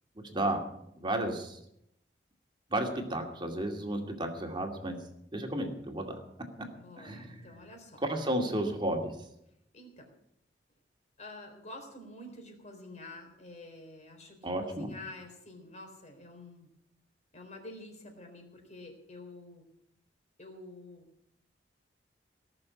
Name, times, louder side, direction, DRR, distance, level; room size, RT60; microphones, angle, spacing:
voice 1, 0.3-0.6 1.0-1.6 2.7-5.0 5.3-6.2 7.0-7.5 8.0-9.1 14.4-14.9, right 1 dB, 25° right, 3 dB, 2.4 m, -32 dB
voice 2, 6.8-8.0 9.7-10.1 11.2-16.7 17.3-19.6 20.4-21.1, left 2 dB, 40° left, 3 dB, 4.0 m, -48 dB
18.0 x 7.0 x 9.7 m, 0.77 s
head